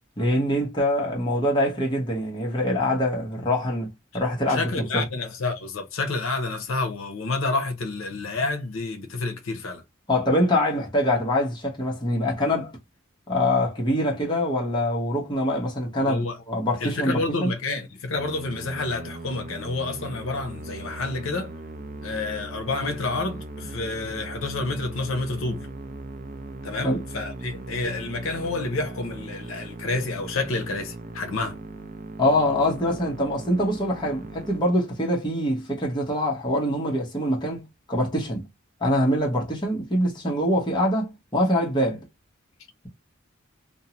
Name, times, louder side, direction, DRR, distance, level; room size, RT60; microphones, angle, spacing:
voice 1, 0.2-3.9 4.1-5.0 10.1-12.7 13.3-17.5 26.8-27.0 32.2-38.4 38.8-42.0, left 1 dB, 20° left, 0.8 m, -24 dB
voice 2, 4.5-9.8 16.0-16.4 16.8-21.5 22.0-25.7 26.6-31.6, left 3 dB, 80° left, 0.6 m, -29 dB
Musical instrument, 18.1-35.3, right 2 dB, 40° right, 0.4 m, -39 dB
2.5 x 2.0 x 2.7 m
head